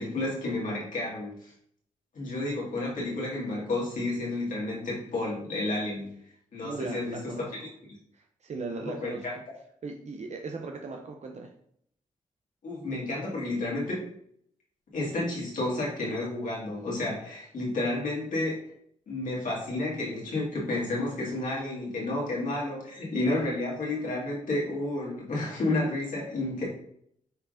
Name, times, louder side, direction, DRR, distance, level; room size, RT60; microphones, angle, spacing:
voice 1, 0.0-1.5 2.2-6.1 6.5-7.2 8.8-9.3 12.6-14.0 14.9-18.6 19.1-26.6, left 2 dB, 70° left, -4 dB, 1.8 m, -31 dB
voice 2, 6.6-7.7 8.1-9.3 9.8-11.5, right 3 dB, 55° right, 3 dB, 0.5 m, -38 dB
5.6 x 3.4 x 2.5 m, 0.67 s
cardioid pair, 55°, 14 cm